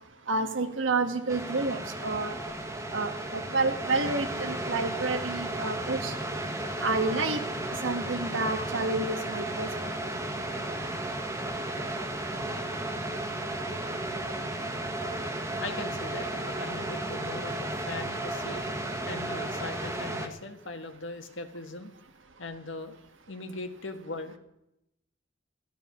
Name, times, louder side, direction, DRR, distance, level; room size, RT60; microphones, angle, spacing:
voice 1, 0.3-2.3 2.9-6.1 6.8-7.4 7.8-9.7, right 3 dB, 80° right, 8 dB, 1.5 m, -29 dB
sound 1, 1.3-20.3, right 1 dB, 15° right, 1.4 m, -34 dB
voice 2, 15.6-18.6 19.0-21.9 22.4-23.0 23.3-24.4, left 3 dB, 75° left, 6 dB, 1.7 m, -39 dB
14.5 x 12.5 x 6.1 m, 0.86 s
head